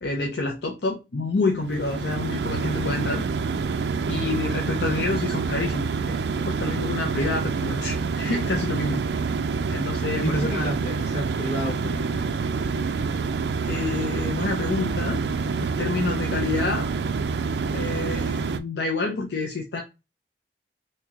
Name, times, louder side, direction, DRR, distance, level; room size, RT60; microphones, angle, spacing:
voice 1, 0.0-3.2 4.1-6.2 6.5-9.0 9.7-10.7 13.7-15.2 15.6-16.9 17.7-19.8, left 3 dB, 70° left, 0.6 m, -28 dB
sound 1, 1.6-18.6, right 5 dB, 70° right, 0.4 m, -27 dB
voice 2, 10.2-12.3, equal, 40° left, 1.7 m, -30 dB
3.0 x 2.8 x 3.5 m
head